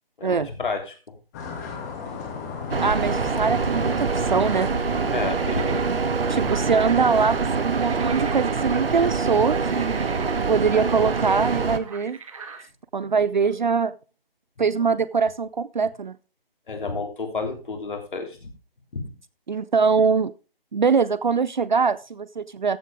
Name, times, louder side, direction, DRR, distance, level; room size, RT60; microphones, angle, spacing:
voice 1, 0.2-0.9 5.1-5.9 16.7-18.5 18.9-19.0, left 4 dB, 55° left, 4 dB, 3.3 m, -30 dB
sound 1, 1.3-6.6, left 5 dB, 15° left, 2.1 m, -37 dB
sound 2, 2.7-11.8, right 4 dB, 70° right, 1.2 m, -25 dB
voice 2, 2.8-4.7 6.3-10.1 10.5-12.2 12.9-13.9 14.6-16.1 19.5-20.3 20.7-22.8, right 5 dB, 50° right, 17 dB, 0.6 m, -23 dB
sound 3, 3.9-12.6, right 5 dB, 35° right, 1.7 m, -42 dB
14.5 x 8.1 x 3.6 m, 0.34 s
figure-of-eight pair, 165°, 30 cm